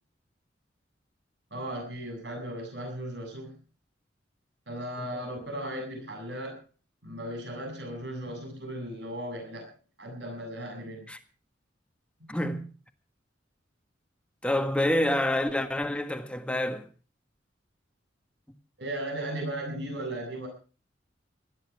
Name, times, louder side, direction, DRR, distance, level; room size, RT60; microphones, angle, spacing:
voice 1, 1.5-3.5 4.7-6.6 7.0-9.7 10.0-11.1 18.8-20.5, right 1 dB, 70° right, 7.6 m, -36 dB
voice 2, 5.0-5.3 11.1-11.2 12.3-12.7 14.4-16.9, left 1 dB, 5° left, 1.6 m, -28 dB
19.5 x 14.0 x 4.7 m
head